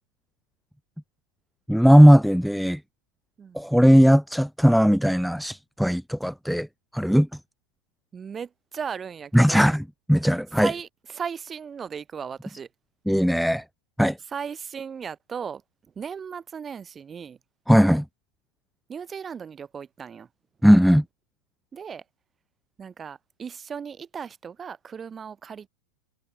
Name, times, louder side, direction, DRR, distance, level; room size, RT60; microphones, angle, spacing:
voice 1, 1.7-2.8 3.5-6.7 6.9-7.3 9.3-9.8 10.1-10.7 13.1-13.6 14.0-14.2 17.7-18.0 20.6-21.0, equal, ahead, 0.3 m, -18 dB
voice 2, 8.1-9.8 10.6-12.7 14.3-15.6 16.0-17.4 18.9-20.3 21.7-22.0 22.8-25.7, right 7 dB, 20° right, 2.6 m, -36 dB
figure-of-eight pair, 90°, 0 cm